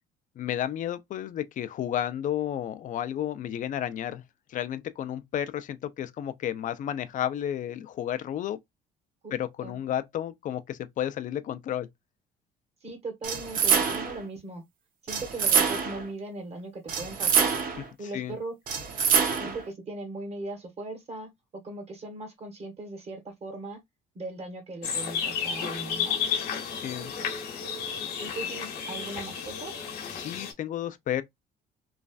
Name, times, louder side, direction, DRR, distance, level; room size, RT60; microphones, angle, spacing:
voice 1, 0.4-4.2 4.5-8.6 9.3-11.9 18.0-18.4 26.7-27.1 30.1-31.2, left 11 dB, 50° left, 0.5 m, -32 dB
voice 2, 12.8-14.6 15.0-17.6 18.0-18.5 19.4-23.8 24.1-26.2 28.2-29.7, right 2 dB, 40° right, 1.3 m, -39 dB
sound 1, 13.2-14.2 15.1-16.1 16.9-17.9 18.7-19.6, right 6 dB, 55° right, 0.9 m, -25 dB
sound 2, 24.8-30.5, left 7 dB, 65° left, 1.0 m, -32 dB
3.1 x 2.4 x 2.4 m
cardioid pair, 110°, 17 cm